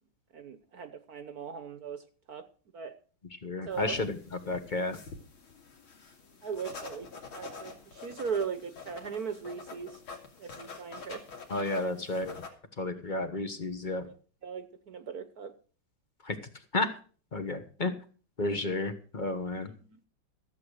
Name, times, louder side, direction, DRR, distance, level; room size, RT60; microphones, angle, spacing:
voice 1, 0.3-2.0 2.3-2.4 2.7-2.9 3.7-4.0 6.4-7.1 7.3-9.9 10.4-11.2 11.8-12.0 12.9-13.2 14.4-15.5 19.7-19.8, right 6 dB, 55° right, 11 dB, 1.3 m, -38 dB
voice 2, 3.4-5.0 11.5-12.4 12.8-14.1 16.2-16.4 16.7-16.9 17.3-17.9 18.4-19.7, left 2 dB, 30° left, 9 dB, 1.0 m, -32 dB
sound 1, 3.7-12.5, left 4 dB, 80° left, 3.1 m, -47 dB
14.5 x 8.3 x 6.4 m, 0.40 s
omnidirectional pair, 2.3 m